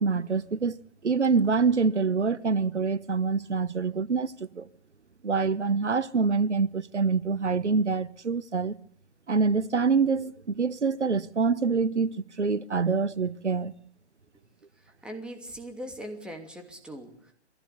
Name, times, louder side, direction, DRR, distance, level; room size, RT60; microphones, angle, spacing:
voice 1, 0.0-4.7 5.2-8.8 9.3-13.7, right 5 dB, 90° right, 1.0 m, -26 dB
voice 2, 14.8-17.3, equal, 5° right, 2.8 m, -41 dB
22.5 x 16.0 x 8.1 m
figure-of-eight pair, 130°, 34 cm